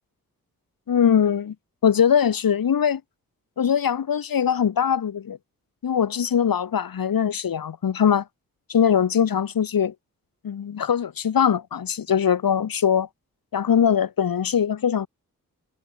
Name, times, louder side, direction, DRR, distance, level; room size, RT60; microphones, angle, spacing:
voice 1, 0.9-1.5 1.8-3.0 3.6-5.4 5.8-8.2 8.7-9.9 10.4-13.1 13.5-15.1, left 8 dB, 80° left, 6.5 m, -21 dB
wide cardioid pair, 100°, 34 cm